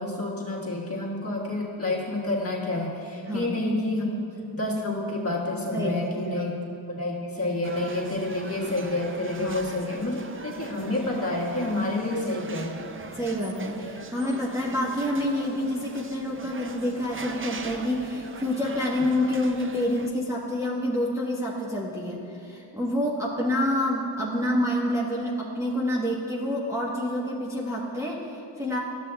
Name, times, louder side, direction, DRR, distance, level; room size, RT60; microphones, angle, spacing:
voice 1, 0.0-4.1 4.5-6.5 6.9-12.7, left 2 dB, 30° left, -4 dB, 1.5 m, -29 dB
voice 2, 3.2-3.6 5.7-6.4 9.3-9.6 13.1-28.8, left 1 dB, 5° right, -5 dB, 1.0 m, -28 dB
sound 1, 7.6-20.1, right 4 dB, 30° right, 0.5 m, -41 dB
12.5 x 6.1 x 2.3 m, 2.8 s
cardioid pair, 45°, 48 cm